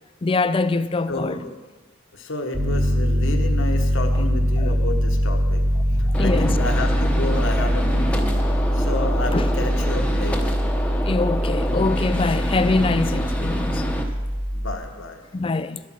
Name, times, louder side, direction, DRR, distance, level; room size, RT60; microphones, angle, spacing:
voice 1, 0.2-1.4 4.6-4.7 5.9-6.6 8.4-8.6 9.3-9.5 11.0-13.9 15.3-15.8, left 3 dB, 25° left, 0.3 m, -24 dB
voice 2, 1.1-1.6 2.1-8.4 8.7-10.6 14.5-15.4, left 2 dB, 60° left, 1.1 m, -31 dB
Piano, 2.5-14.8, equal, 25° right, 1.5 m, -22 dB
Gunshot gunfire, 6.1-14.0, equal, 5° left, 0.9 m, -28 dB
12.5 x 8.3 x 6.1 m
head